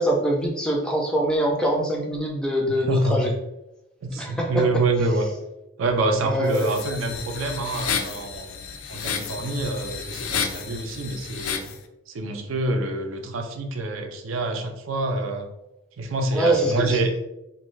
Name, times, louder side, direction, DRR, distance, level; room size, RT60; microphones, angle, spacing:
voice 1, 0.0-3.3 4.1-4.5 6.2-6.7 16.3-17.0, right 1 dB, 5° left, -1 dB, 0.4 m, -24 dB
voice 2, 2.7-3.3 4.0-5.3 5.8-11.7 12.1-15.5 16.0-17.1, right 2 dB, 75° right, 5 dB, 0.4 m, -26 dB
sound 1, 6.5-11.8, left 7 dB, 80° left, 0.3 m, -31 dB
2.5 x 2.3 x 3.1 m, 0.93 s
head